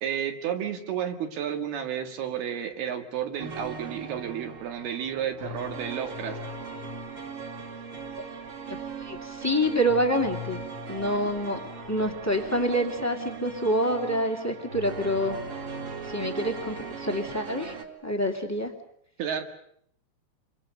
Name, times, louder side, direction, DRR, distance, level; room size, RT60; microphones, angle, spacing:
voice 1, 0.0-6.4 19.2-19.4, right 9 dB, 70° right, 5 dB, 3.9 m, -31 dB
sound 1, 3.4-17.8, right 3 dB, 35° right, 2.9 m, -38 dB
voice 2, 8.7-10.6 10.9-11.6 11.9-15.4 16.1-17.7 18.0-18.7, equal, 5° left, 2 dB, 1.3 m, -27 dB
28.5 x 24.0 x 6.8 m, 0.70 s
omnidirectional pair, 4.8 m